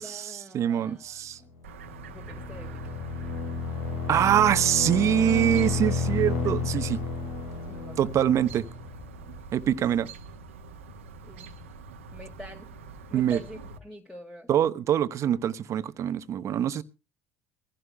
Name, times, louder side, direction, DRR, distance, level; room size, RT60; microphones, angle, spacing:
voice 1, 0.0-1.5 2.1-2.8 7.6-8.0 11.2-11.5 12.1-12.7 13.1-14.5, left 1 dB, 5° left, 2.1 m, -45 dB
voice 2, 0.5-1.4 4.1-7.0 8.0-8.7 9.5-10.1 13.1-13.4 14.5-16.8, right 10 dB, 45° right, 0.8 m, -24 dB
sound 1, 1.6-9.4, left 4 dB, 75° left, 4.1 m, -31 dB
Chirp tweet, 1.6-13.8, right 4 dB, 85° right, 1.2 m, -45 dB
23.0 x 15.5 x 2.2 m
hypercardioid pair, 70°, 7 cm